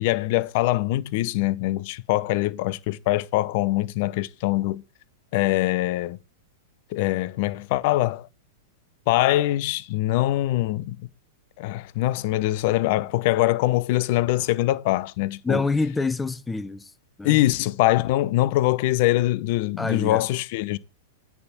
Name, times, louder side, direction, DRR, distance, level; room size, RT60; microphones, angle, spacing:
voice 1, 0.0-4.8 5.3-6.2 6.9-8.3 9.1-11.0 11.6-15.6 17.2-20.8, left 16 dB, 55° left, 0.6 m, -23 dB
voice 2, 15.4-16.9 17.2-17.4 19.8-20.3, left 3 dB, 10° left, 0.7 m, -26 dB
9.6 x 3.5 x 5.8 m
hypercardioid pair, 135°, 0 cm